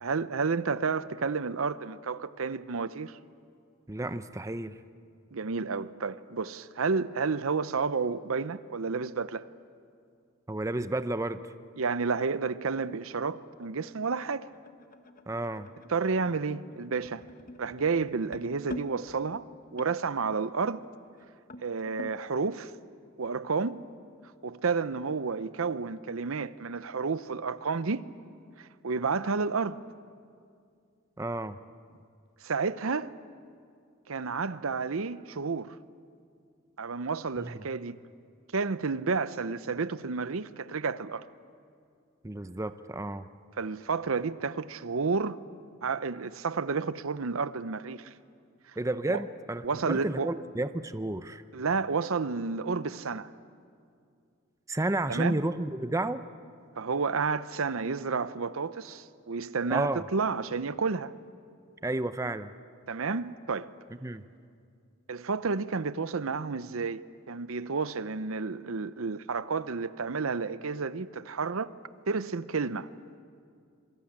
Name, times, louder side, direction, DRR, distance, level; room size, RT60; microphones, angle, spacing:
voice 1, 0.0-3.2 5.3-9.5 11.8-14.5 15.9-17.2 17.6-19.4 19.7-20.8 21.6-22.7 23.2-23.8 24.4-28.1 28.6-29.8 32.4-33.1 34.1-35.7 36.8-38.0 38.5-41.3 43.6-45.4 45.8-48.1 49.1-49.2 49.6-50.3 51.5-53.3 55.1-55.4 56.8-61.1 62.9-63.7 65.1-67.0 67.3-71.7 72.1-72.9, right 4 dB, 70° right, 0.7 m, -31 dB
voice 2, 3.9-4.8 10.5-11.4 15.3-15.7 31.2-31.6 37.4-37.5 42.2-43.3 48.8-51.4 54.7-56.2 59.7-60.0 61.8-62.5 64.0-64.2, right 2 dB, 15° right, 0.6 m, -31 dB
sound 1, 12.9-22.2, left 1 dB, 40° left, 1.2 m, -47 dB
26.5 x 23.0 x 8.8 m
head